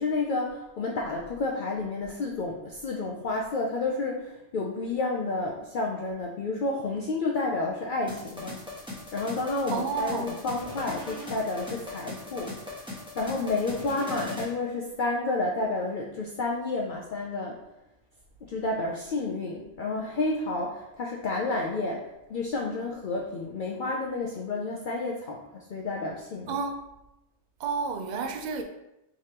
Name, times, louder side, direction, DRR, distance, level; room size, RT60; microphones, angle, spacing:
voice 1, 0.0-8.6 9.1-12.6 13.1-17.6 18.4-26.6, left 3 dB, 60° left, 0.5 m, -30 dB
sound 1, 8.1-14.5, left 2 dB, 5° right, 1.0 m, -39 dB
voice 2, 9.7-10.3 26.5-26.9 27.6-28.6, right 4 dB, 60° right, 0.5 m, -30 dB
4.9 x 3.3 x 2.9 m
omnidirectional pair, 1.2 m